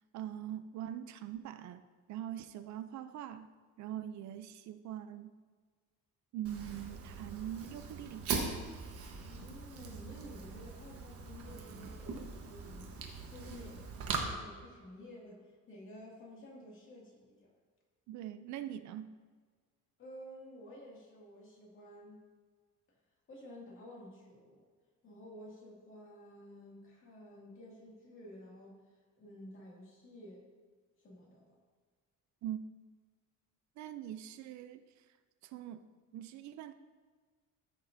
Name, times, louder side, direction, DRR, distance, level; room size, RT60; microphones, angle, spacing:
voice 1, 0.1-1.8 2.1-3.5 3.8-5.3 6.3-8.3 18.1-19.1 32.4-32.6 33.8-35.1 35.4-35.8 36.1-36.7, right 11 dB, 60° right, 11 dB, 0.4 m, -42 dB
Fire, 6.4-14.2, right 5 dB, 45° right, 1.2 m, -41 dB
voice 2, 9.2-17.5 20.0-22.3 23.3-24.6 25.0-28.8 29.2-30.4 31.0-31.6, left 1 dB, 40° left, -3 dB, 2.2 m, -52 dB
13.5 x 6.4 x 2.6 m, 1.5 s
cardioid pair, 165°, 32 cm